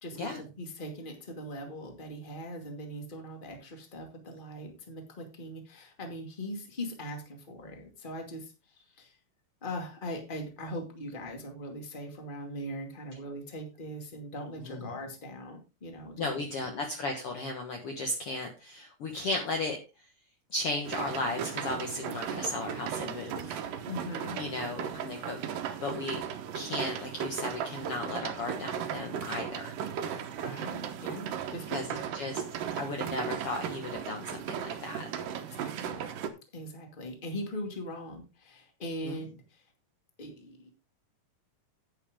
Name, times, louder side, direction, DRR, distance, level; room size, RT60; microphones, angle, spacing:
voice 1, 0.0-9.2 9.6-16.3 23.9-24.4 30.4-32.0 35.3-36.0 36.5-39.7 40.2-40.7, equal, 20° left, 3 dB, 1.9 m, -40 dB
voice 2, 16.2-20.1 20.5-23.6 24.4-25.4 25.8-26.2 26.5-29.8 31.7-31.9 32.1-32.4 32.8-35.1 39.0-39.2, left 2 dB, 55° left, 3 dB, 1.9 m, -35 dB
sound 1, 20.8-36.3, right 8 dB, 80° right, 2.8 m, -36 dB
10.5 x 9.5 x 3.6 m, 0.28 s
omnidirectional pair, 3.9 m